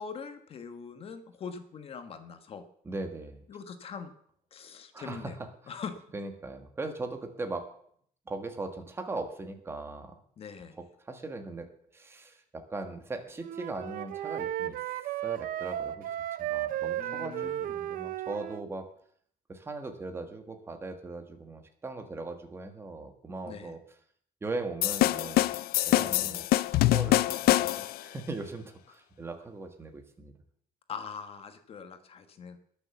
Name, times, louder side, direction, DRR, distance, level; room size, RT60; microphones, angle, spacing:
voice 1, 0.0-2.6 3.5-4.1 4.5-5.4 5.7-6.0 10.4-10.8 17.0-17.8 23.5-23.7 25.9-26.4 30.9-32.6, left 6 dB, 40° left, 8 dB, 1.3 m, -42 dB
voice 2, 2.8-3.4 4.9-5.5 6.1-7.7 8.3-10.2 10.8-14.8 15.2-18.9 19.5-23.8 24.4-25.6 25.9-26.5 26.9-30.3, right 3 dB, 15° right, 6 dB, 1.5 m, -39 dB
Wind instrument woodwind instrument, 13.4-18.6, right 12 dB, 65° right, 0.7 m, -34 dB
sound 1, 24.8-28.0, left 16 dB, 85° left, 0.5 m, -25 dB
20.5 x 6.9 x 7.1 m, 0.63 s
cardioid pair, 180°, 15 cm